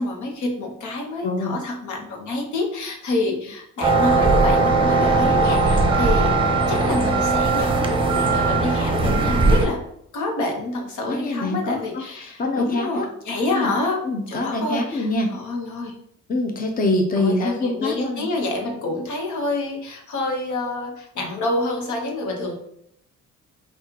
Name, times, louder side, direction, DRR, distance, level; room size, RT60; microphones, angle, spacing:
voice 1, 0.0-6.3 6.7-9.8 10.1-15.9 17.2-22.5, left 2 dB, 75° left, 2 dB, 1.1 m, -27 dB
voice 2, 1.2-1.6 3.2-3.4 11.0-13.1 13.5-13.7 14.0-15.3 16.3-18.3, left 2 dB, 30° left, 3 dB, 0.6 m, -25 dB
sound 1, 3.8-9.7, right 3 dB, 15° right, 0.7 m, -19 dB
5.4 x 2.4 x 2.9 m, 0.71 s
cardioid pair, 90°, 30 cm